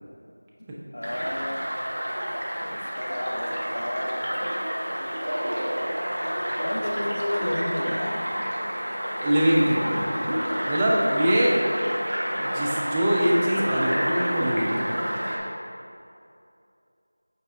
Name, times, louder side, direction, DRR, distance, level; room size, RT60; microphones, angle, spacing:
voice 1, 0.9-1.7 2.6-4.3 6.6-8.4, left 1 dB, 60° left, 3 dB, 0.7 m, -31 dB
sound 1, 1.0-15.4, equal, 75° right, 1.5 m, -29 dB
voice 2, 9.2-10.1 10.7-11.7 12.4-14.9, equal, 10° right, -5 dB, 0.4 m, -23 dB
7.7 x 4.7 x 3.4 m, 2.6 s
figure-of-eight pair, 175°, 0 cm